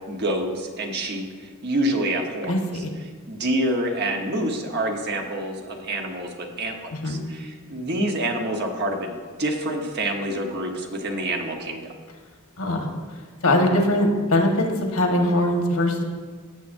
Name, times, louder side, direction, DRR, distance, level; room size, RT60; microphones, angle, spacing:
voice 1, 0.1-2.8 3.3-11.9, right 1 dB, 50° right, 2 dB, 1.1 m, -27 dB
voice 2, 2.5-2.9 6.9-7.2 12.6-12.9 13.4-16.0, left 1 dB, 80° left, 2 dB, 1.4 m, -21 dB
15.5 x 7.0 x 2.6 m, 1.5 s
head